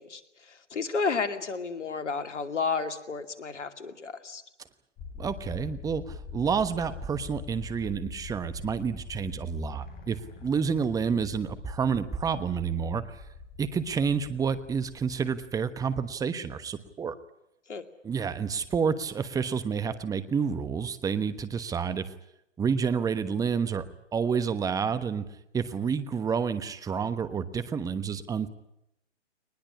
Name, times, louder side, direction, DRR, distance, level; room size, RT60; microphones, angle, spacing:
voice 1, 0.0-4.4 17.7-17.8, left 5 dB, 80° left, 9 dB, 2.6 m, -32 dB
sound 1, 5.0-15.6, left 5 dB, 25° left, 4.0 m, -44 dB
voice 2, 5.2-13.2 13.6-17.1 18.0-22.1 22.6-23.8 24.1-25.3 25.5-28.5, right 6 dB, 10° right, 12 dB, 1.2 m, -29 dB
22.0 x 20.5 x 10.0 m, 0.83 s
hypercardioid pair, 130°, 35 cm